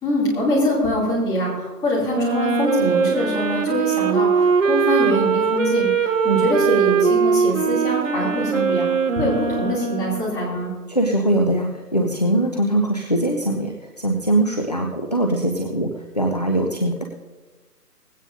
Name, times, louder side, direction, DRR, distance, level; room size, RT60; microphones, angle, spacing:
voice 1, 0.0-8.9 9.2-10.7, equal, 10° left, -6 dB, 2.8 m, -23 dB
Wind instrument woodwind instrument, 2.1-10.5, right 5 dB, 50° right, 1.3 m, -21 dB
voice 2, 10.9-17.0, right 1 dB, 25° left, 3 dB, 0.5 m, -22 dB
19.0 x 16.5 x 2.6 m, 1.3 s
figure-of-eight pair, 160°, 48 cm